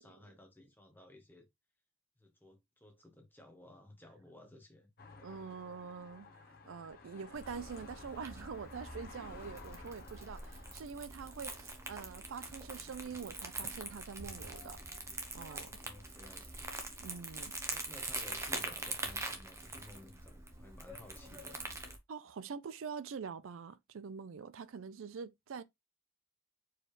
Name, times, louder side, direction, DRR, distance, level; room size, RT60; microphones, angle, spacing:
voice 1, 0.0-1.5 2.2-4.9 15.6-16.8 17.7-21.6, left 1 dB, 10° left, 1.0 m, -56 dB
sound 1, 5.0-10.7, left 4 dB, 45° left, 0.9 m, -54 dB
voice 2, 5.2-6.3 6.7-14.8 15.3-15.8 17.0-17.5 22.1-25.6, right 6 dB, 75° right, 0.4 m, -45 dB
Crumpling crinkling, 7.3-22.0, right 2 dB, 15° right, 0.8 m, -44 dB
4.6 x 3.3 x 3.1 m
head